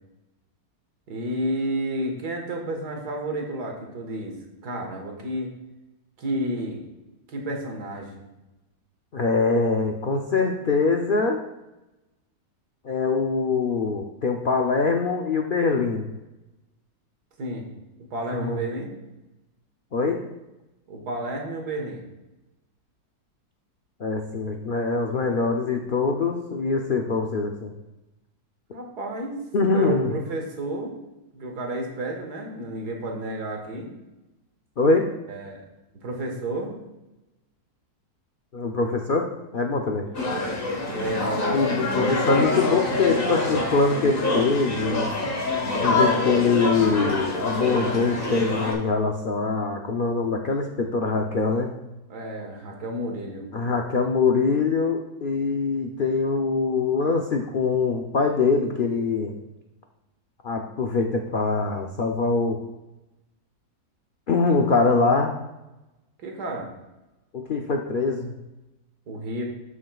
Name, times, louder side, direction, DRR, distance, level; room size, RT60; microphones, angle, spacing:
voice 1, 1.1-4.3 4.6-5.5 6.2-6.8 7.3-8.2 17.4-17.7 18.1-18.9 20.9-22.0 28.7-29.4 29.7-31.0 31.3-33.9 35.3-35.6 35.9-36.8 40.2-40.4 40.9-42.1 52.1-53.5 66.2-66.7 69.1-69.4, right 1 dB, 80° right, 1 dB, 2.0 m, -31 dB
voice 2, 9.1-11.4 12.8-16.1 18.3-18.6 19.9-20.2 24.0-27.7 29.5-30.1 34.8-35.1 38.5-40.1 41.5-45.1 45.8-51.7 53.5-59.3 60.4-62.6 64.3-65.3 67.3-68.3, left 4 dB, 65° left, 2 dB, 0.5 m, -23 dB
sound 1, 40.1-48.7, left 2 dB, 40° left, 1.4 m, -25 dB
12.5 x 6.1 x 2.3 m, 1.0 s
omnidirectional pair, 1.7 m